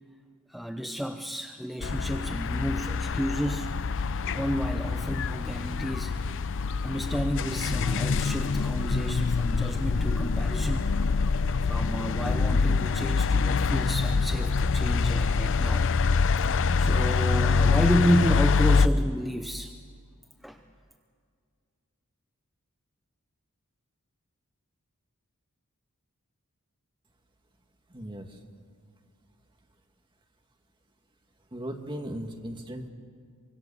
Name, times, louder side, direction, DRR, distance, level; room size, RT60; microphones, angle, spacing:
voice 1, 0.5-3.7 4.3-6.2 6.8-10.9 11.6-15.9 16.4-19.7 20.4-20.6, equal, ahead, 5 dB, 0.7 m, -31 dB
sound 1, 1.8-18.9, left 4 dB, 60° left, 0.6 m, -25 dB
voice 2, 27.9-28.4 31.5-32.9, equal, 20° right, 3 dB, 1.9 m, -37 dB
25.0 x 24.5 x 7.0 m, 2.1 s
head